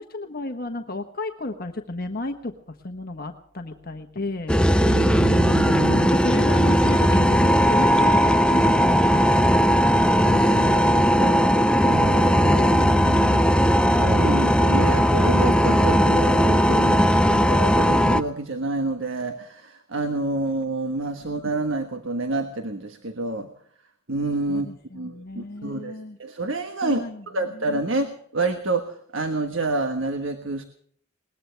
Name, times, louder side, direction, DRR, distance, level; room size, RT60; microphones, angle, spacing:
voice 1, 0.0-4.5 5.9-10.1 21.2-21.3 24.5-26.2 26.8-27.7, left 2 dB, 50° left, 5 dB, 1.2 m, -33 dB
sound 1, 4.5-18.2, equal, 5° left, 0.6 m, -18 dB
voice 2, 4.8-6.1 10.2-11.5 11.8-23.5 24.1-24.7 24.9-27.0 27.3-30.6, right 2 dB, 80° right, 7 dB, 1.4 m, -28 dB
21.5 x 19.5 x 3.4 m, 0.62 s
head